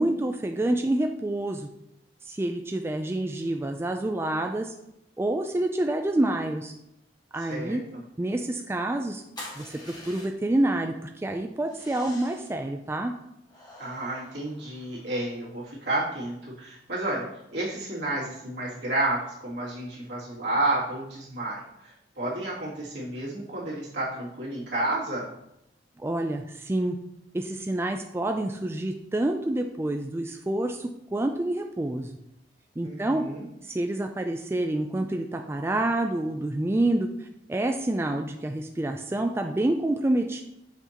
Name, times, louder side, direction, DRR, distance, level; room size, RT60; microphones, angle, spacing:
voice 1, 0.0-1.7 2.3-4.7 5.2-6.7 7.3-7.8 8.2-9.2 9.6-13.1 26.0-27.0 27.3-32.1 32.8-33.2 33.6-37.1 37.5-40.4, right 1 dB, 15° right, 4 dB, 0.3 m, -27 dB
voice 2, 7.4-8.0 13.8-17.2 17.5-25.3 32.8-33.4, right 2 dB, 70° right, -6 dB, 2.5 m, -31 dB
sound 1, 9.4-10.6 11.7-12.6 13.5-15.2, left 1 dB, 25° left, 1.5 m, -45 dB
6.9 x 5.9 x 2.9 m, 0.82 s
head